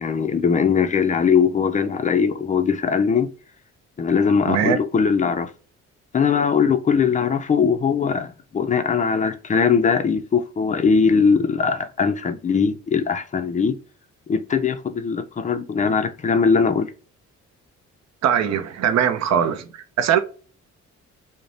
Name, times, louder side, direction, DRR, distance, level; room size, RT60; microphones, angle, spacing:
voice 1, 0.0-3.3 4.0-5.5 6.1-13.7 14.3-16.9, left 6 dB, 25° left, 0.4 m, -20 dB
voice 2, 4.5-4.8 18.2-19.7 20.0-20.2, right 8 dB, 60° right, 0.5 m, -20 dB
2.5 x 2.1 x 3.1 m
cardioid pair, 90°, 30 cm